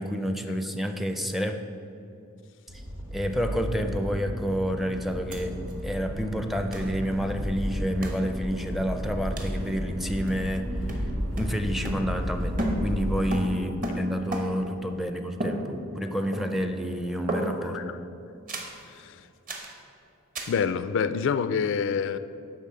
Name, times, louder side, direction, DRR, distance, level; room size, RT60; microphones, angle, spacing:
voice 1, 0.0-1.6 2.7-2.8 3.1-5.6 5.8-10.7 11.3-15.7 16.0-17.8, equal, ahead, 6 dB, 0.5 m, -29 dB
Accelerating revving vroom, 2.7-13.2, equal, 75° right, 2.2 m, -33 dB
sound 1, 5.3-5.4 5.7-5.8 6.7-6.9 8.0-8.3 9.4-9.6 10.3-10.6 10.9-12.3 12.6-14.7 15.4-16.0 16.3-16.8 17.3-17.8 18.5-18.8 19.5-19.8 20.3-20.6, right 1 dB, 40° right, 1.1 m, -34 dB
voice 2, 20.5-22.2, left 6 dB, 60° left, 13 dB, 0.3 m, -27 dB
11.0 x 4.2 x 7.5 m, 2.7 s
head